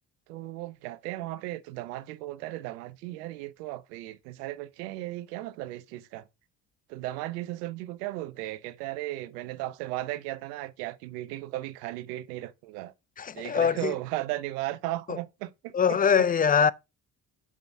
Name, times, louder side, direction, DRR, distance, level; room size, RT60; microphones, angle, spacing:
voice 1, 0.3-6.2 6.9-12.9 13.3-16.0, right 16 dB, 80° right, 0.7 m, -36 dB
voice 2, 13.2-13.9 15.1-15.2 15.7-16.7, left 7 dB, 20° left, 0.3 m, -23 dB
8.3 x 3.9 x 4.6 m
hypercardioid pair, 45°, 48 cm